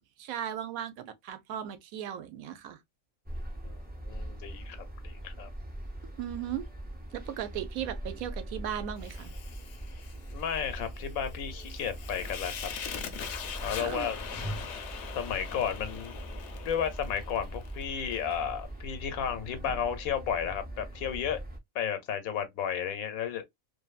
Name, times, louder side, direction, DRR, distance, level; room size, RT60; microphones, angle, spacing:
voice 1, 0.2-2.8 6.2-6.6 7.1-9.3 13.8-14.1, right 10 dB, 85° right, 1.0 m, -37 dB
sound 1, 3.3-21.6, right 1 dB, 15° right, 0.4 m, -41 dB
voice 2, 3.6-5.5 10.3-12.7 13.6-14.2 15.1-16.2 16.6-21.4 21.7-23.4, left 8 dB, 85° left, 1.1 m, -33 dB
Fire, 9.0-18.2, left 7 dB, 65° left, 0.8 m, -42 dB
2.6 x 2.5 x 2.3 m
omnidirectional pair, 1.4 m